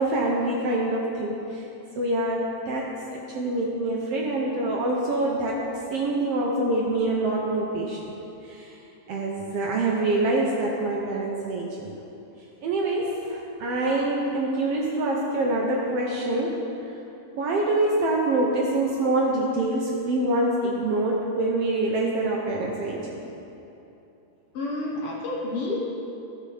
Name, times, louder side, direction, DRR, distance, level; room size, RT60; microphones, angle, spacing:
voice 1, 0.0-1.6 2.0-5.6 5.9-8.1 8.4-8.7 9.1-12.0 12.6-16.6 17.4-23.0, right 2 dB, 80° right, -2 dB, 1.4 m, -25 dB
voice 2, 24.5-25.8, left 2 dB, 65° left, -3 dB, 1.5 m, -29 dB
15.0 x 6.5 x 3.4 m, 2.9 s
omnidirectional pair, 3.7 m